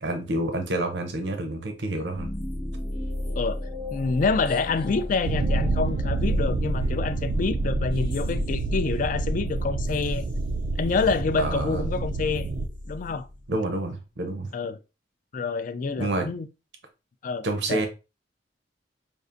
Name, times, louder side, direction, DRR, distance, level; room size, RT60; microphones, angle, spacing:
voice 1, 0.0-2.3 11.4-11.9 13.5-14.5 16.0-16.3 17.4-17.9, right 2 dB, 70° right, 0.7 m, -28 dB
sound 1, 2.1-13.7, left 1 dB, 30° left, 1.0 m, -36 dB
voice 2, 3.9-10.2 10.8-12.5 12.9-13.3 14.5-14.8 15.3-16.5 17.2-17.9, left 4 dB, 45° left, 0.3 m, -27 dB
sound 2, 5.2-12.7, right 2 dB, 55° right, 0.3 m, -28 dB
5.2 x 2.4 x 2.5 m
head